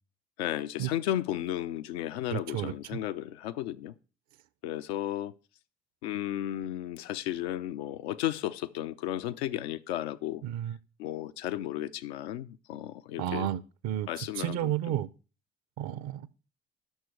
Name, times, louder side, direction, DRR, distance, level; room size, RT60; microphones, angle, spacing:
voice 1, 0.4-3.9 4.6-5.3 6.0-10.4 11.0-13.5 14.1-15.0, left 13 dB, 75° left, 0.5 m, -34 dB
voice 2, 2.3-3.0 10.4-10.8 13.2-14.1 14.4-15.1 15.8-16.3, right 12 dB, 60° right, 0.6 m, -32 dB
11.0 x 6.2 x 4.6 m
figure-of-eight pair, 45°, 32 cm